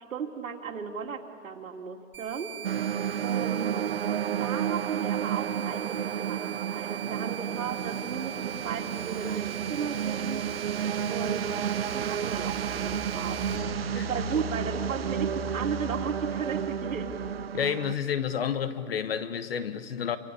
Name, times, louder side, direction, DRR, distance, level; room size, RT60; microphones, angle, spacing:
voice 1, 0.1-2.5 3.2-4.0 4.4-10.5 11.1-11.5 11.8-13.4 13.9-17.2, right 6 dB, 70° right, 4 dB, 2.7 m, -35 dB
sound 1, 2.1-13.6, right 10 dB, 5° right, 2.6 m, -41 dB
sound 2, 2.6-17.9, right 9 dB, 45° right, 0.6 m, -31 dB
Engine, 11.7-17.7, left 6 dB, 70° left, 1.6 m, -41 dB
voice 2, 17.5-20.2, left 8 dB, 45° left, 12 dB, 1.3 m, -30 dB
27.5 x 25.0 x 7.0 m, 2.3 s
hypercardioid pair, 175°, 42 cm